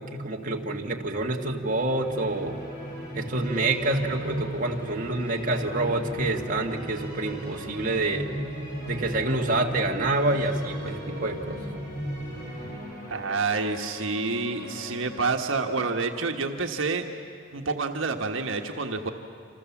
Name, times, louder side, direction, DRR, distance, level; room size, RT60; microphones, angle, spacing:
voice 1, 0.0-2.6 3.1-8.3 8.9-11.6, right 2 dB, 40° right, 1 dB, 1.7 m, -27 dB
sound 1, 0.6-12.8, equal, 20° left, 5.6 m, -38 dB
sound 2, 1.6-17.7, equal, 40° left, 6.8 m, -42 dB
voice 2, 13.1-17.0 17.5-19.1, right 4 dB, 75° right, 3 dB, 1.5 m, -28 dB
29.0 x 27.0 x 7.2 m, 2.4 s
head